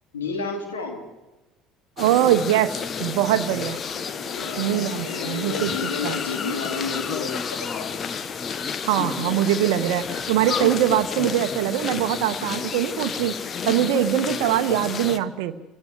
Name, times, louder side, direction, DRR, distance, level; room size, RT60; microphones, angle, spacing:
voice 1, 0.1-1.0 3.9-7.9, left 4 dB, 75° left, 4 dB, 3.3 m, -32 dB
sound 1, 2.0-15.2, left 6 dB, 35° left, 1.2 m, -30 dB
voice 2, 2.0-2.7 3.0-3.8 4.6-6.2 8.8-13.3 13.6-15.6, right 12 dB, 65° right, 9 dB, 0.9 m, -22 dB
26.0 x 17.0 x 7.6 m, 1.1 s
figure-of-eight pair, 60°, 0 cm